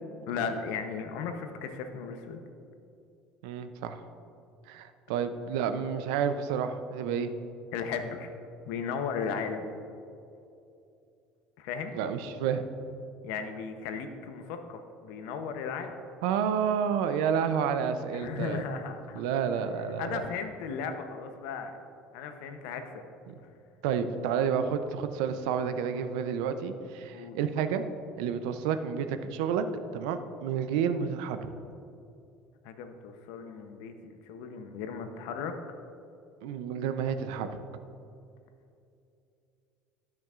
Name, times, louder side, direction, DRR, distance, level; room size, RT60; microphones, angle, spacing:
voice 1, 0.3-2.4 7.7-8.3 8.7-9.7 11.6-11.9 13.2-16.0 18.1-19.2 20.0-21.7 22.1-23.1 27.1-27.4 32.6-35.6, left 6 dB, 80° left, 7 dB, 0.7 m, -36 dB
voice 2, 3.4-4.0 4.7-7.3 11.9-12.6 16.2-18.6 19.1-20.2 23.3-23.4 23.8-27.8 28.2-29.6 29.9-31.5 36.4-37.5, right 7 dB, 85° right, 10 dB, 0.5 m, -30 dB
13.0 x 5.9 x 2.4 m, 2.6 s
supercardioid pair, 100°, 3 cm